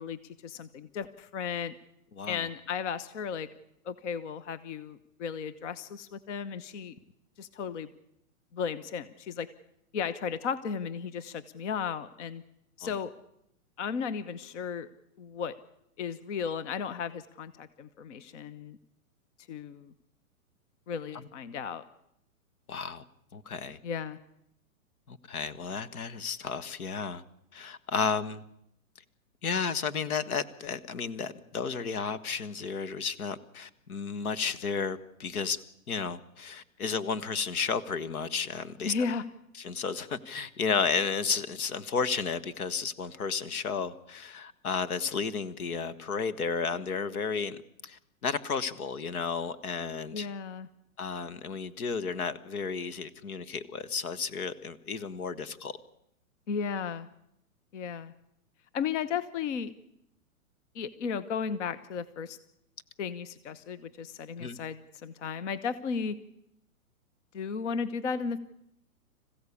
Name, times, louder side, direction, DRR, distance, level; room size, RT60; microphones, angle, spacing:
voice 1, 0.0-1.8 2.3-3.5 3.8-7.0 7.4-7.9 8.5-9.5 9.9-12.4 12.8-13.1 13.8-14.9 15.2-15.5 16.0-18.8 19.5-19.9 20.9-21.8 23.8-24.2 38.8-39.2 50.1-50.7 56.5-57.1 57.7-58.1 58.7-59.7 60.7-62.4 63.0-66.2 67.3-68.4, left 6 dB, 55° left, 15 dB, 1.1 m, -35 dB
voice 2, 22.7-23.0 23.3-23.8 25.1-27.2 27.5-28.4 29.4-35.6 35.9-38.9 39.5-47.6 47.8-50.3 51.0-55.8 64.4-64.6, left 5 dB, 80° left, 14 dB, 1.6 m, -33 dB
26.5 x 15.5 x 8.5 m, 0.78 s
hypercardioid pair, 155°, 43 cm